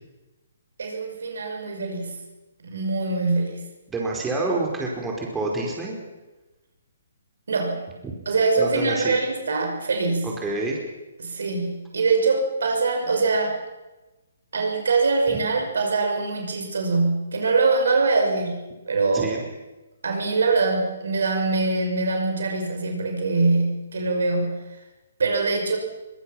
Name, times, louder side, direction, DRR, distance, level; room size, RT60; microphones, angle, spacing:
voice 1, 0.8-2.2 2.6-3.6 7.5-7.9 8.3-10.3 11.2-13.6 14.5-19.3 20.0-24.6 25.2-25.8, right 3 dB, 60° right, 3 dB, 6.0 m, -23 dB
voice 2, 3.9-6.0 8.0-8.1 8.6-9.2 10.2-10.8 15.3-15.4 19.1-19.5, right 2 dB, 10° right, -1 dB, 4.9 m, -27 dB
24.0 x 23.5 x 6.0 m, 1.1 s
figure-of-eight pair, 130°, 0 cm